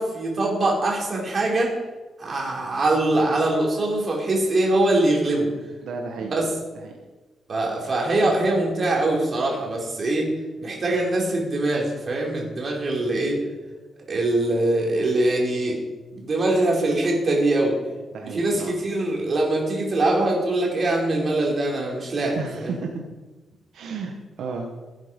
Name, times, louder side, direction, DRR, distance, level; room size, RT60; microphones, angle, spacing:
voice 1, 0.0-1.7 2.2-5.5 6.3-6.4 7.5-10.3 10.6-13.4 14.1-15.8 16.1-17.8 18.3-22.7, right 2 dB, 35° right, -2 dB, 4.0 m, -23 dB
voice 2, 5.8-6.3 6.7-6.9 18.1-18.8 22.4-23.0 23.7-24.7, right 4 dB, 75° right, 1 dB, 1.6 m, -33 dB
16.0 x 9.8 x 5.4 m, 1.2 s
cardioid pair, 140°, 0 cm